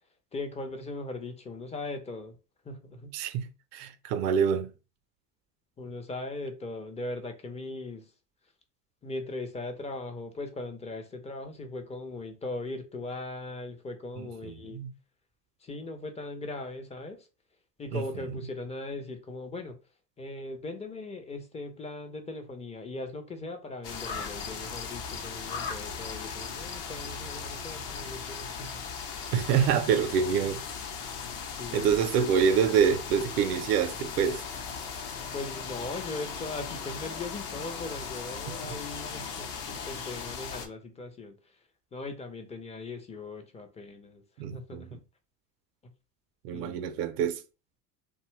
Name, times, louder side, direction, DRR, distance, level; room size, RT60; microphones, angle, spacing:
voice 1, 0.3-2.4 2.6-3.2 5.8-8.1 9.0-14.8 15.6-17.3 17.8-19.8 20.2-28.8 31.6-32.1 35.3-41.6 41.9-44.2 44.5-45.0 46.5-46.8, left 2 dB, 15° left, 0.4 m, -39 dB
voice 2, 3.1-4.8 14.2-14.9 17.9-18.0 29.3-30.7 31.7-34.4 38.6-38.8 44.4-45.0 46.4-47.4, right 7 dB, 75° right, 0.6 m, -26 dB
sound 1, 23.8-40.7, left 6 dB, 55° left, 0.8 m, -38 dB
2.6 x 2.2 x 3.1 m
hypercardioid pair, 80°, 49 cm